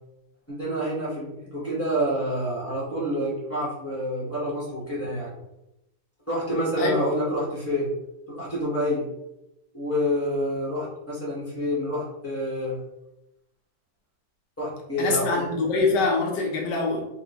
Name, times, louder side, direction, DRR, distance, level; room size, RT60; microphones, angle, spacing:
voice 1, 0.5-5.3 6.3-7.9 8.3-9.1 9.7-12.8 14.6-15.4, equal, 20° left, -6 dB, 0.4 m, -28 dB
voice 2, 15.0-17.1, left 3 dB, 70° left, 0 dB, 1.2 m, -24 dB
4.3 x 2.1 x 2.8 m, 0.88 s
omnidirectional pair, 2.1 m